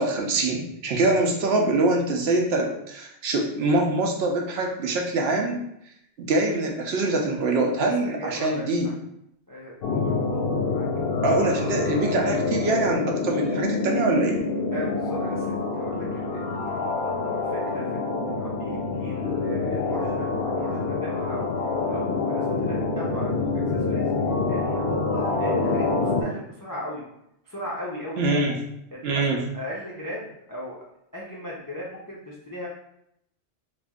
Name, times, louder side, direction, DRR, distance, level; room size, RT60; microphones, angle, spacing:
voice 1, 0.0-5.6 6.2-8.9 11.2-14.4 28.2-28.5 29.0-29.4, right 2 dB, 65° right, 1 dB, 0.8 m, -24 dB
voice 2, 7.8-8.9 9.5-10.3 10.6-10.9 14.7-21.5 21.9-24.1 24.5-27.0 27.4-28.4 28.9-30.8 31.1-32.7, equal, 35° left, -5 dB, 0.3 m, -38 dB
sound 1, 9.8-26.2, left 3 dB, 65° left, 0.7 m, -26 dB
3.0 x 2.5 x 3.5 m, 0.77 s
omnidirectional pair, 1.2 m